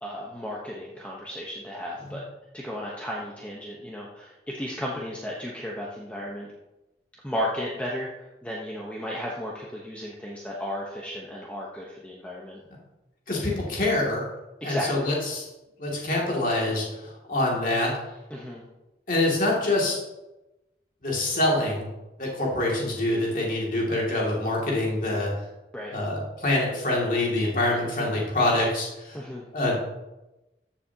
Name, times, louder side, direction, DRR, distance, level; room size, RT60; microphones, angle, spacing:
voice 1, 0.0-2.2 2.5-6.5 7.2-12.6 14.6-15.1 18.3-18.6 25.7-25.9 29.1-29.5, equal, 5° left, -4 dB, 1.0 m, -34 dB
voice 2, 13.3-14.2 14.6-15.4 15.8-17.9 19.1-20.0 21.0-21.9 22.2-25.3 25.9-29.2 29.5-29.8, left 1 dB, 50° left, -3 dB, 2.5 m, -25 dB
14.0 x 7.3 x 2.9 m, 1.0 s
head